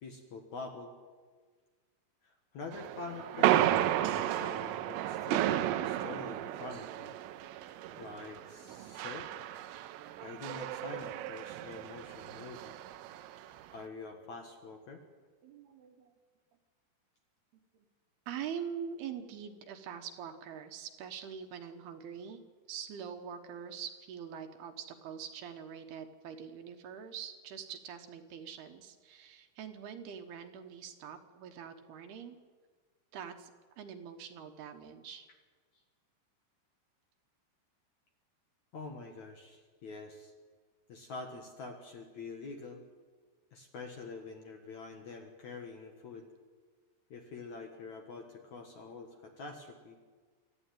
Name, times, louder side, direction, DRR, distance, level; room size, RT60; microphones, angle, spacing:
voice 1, 0.0-1.0 2.2-7.2 8.0-9.3 10.2-12.7 13.7-15.0 38.7-40.3 40.9-42.8 43.5-46.3 47.1-50.0, left 4 dB, 65° left, 3 dB, 1.8 m, -46 dB
sound 1, 2.7-13.7, right 13 dB, 85° right, 3.5 m, -33 dB
voice 2, 7.7-8.0 8.4-8.5 11.0-11.1 15.4-16.1 18.3-22.4 22.7-32.4 33.1-33.5 33.8-35.3, right 8 dB, 65° right, 6 dB, 2.8 m, -44 dB
26.0 x 14.0 x 9.2 m, 1.5 s
omnidirectional pair, 5.7 m